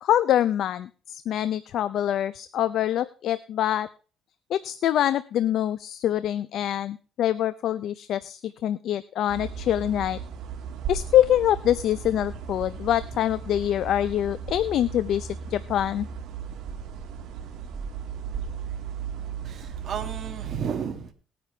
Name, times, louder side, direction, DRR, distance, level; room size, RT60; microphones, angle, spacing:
voice 1, 0.0-3.9 4.5-10.2 10.9-16.1, left 11 dB, 65° left, 14 dB, 0.5 m, -25 dB
sound 1, 9.3-20.6, right 7 dB, 75° right, 2.0 m, -36 dB
voice 2, 19.4-21.1, right 7 dB, 50° right, 4 dB, 2.0 m, -32 dB
19.0 x 9.4 x 3.3 m, 0.36 s
cardioid pair, 135°, 0 cm